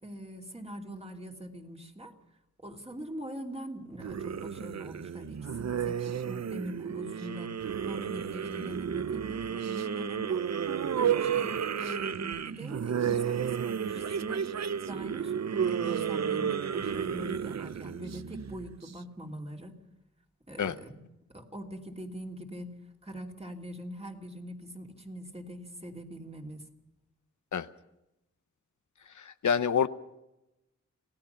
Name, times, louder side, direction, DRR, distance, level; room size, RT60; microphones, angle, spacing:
voice 1, 0.0-2.1 2.6-7.5 7.8-10.4 11.0-14.4 14.9-19.8 20.5-21.0 21.3-22.7 23.0-26.6, right 1 dB, 20° right, 2 dB, 2.9 m, -42 dB
sound 1, 4.0-18.9, right 8 dB, 65° right, 0.6 m, -32 dB
voice 2, 29.2-29.9, left 7 dB, 90° left, 12 dB, 0.8 m, -27 dB
27.0 x 17.0 x 5.7 m, 0.92 s
wide cardioid pair, 90°, 29 cm